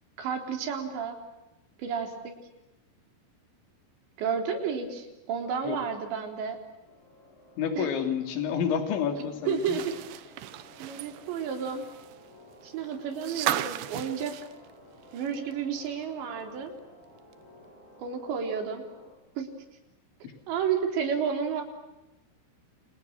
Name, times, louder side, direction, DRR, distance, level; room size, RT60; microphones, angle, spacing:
voice 1, 0.2-1.2 1.8-2.1 4.2-6.6 7.8-7.9 9.2-10.3 10.8-11.9 12.6-14.3 15.1-16.7 18.0-18.8 19.4-19.5 20.5-21.6, right 7 dB, 60° right, 4 dB, 5.9 m, -31 dB
sound 1, 6.8-19.2, left 1 dB, 30° left, 6.5 m, -55 dB
voice 2, 7.6-9.8 20.2-20.3, left 7 dB, 65° left, 6 dB, 5.2 m, -29 dB
sound 2, 9.5-15.5 15.9-16.0 17.3-17.4, right 13 dB, 75° right, 2.4 m, -36 dB
30.0 x 29.5 x 6.2 m, 0.99 s
omnidirectional pair, 6.0 m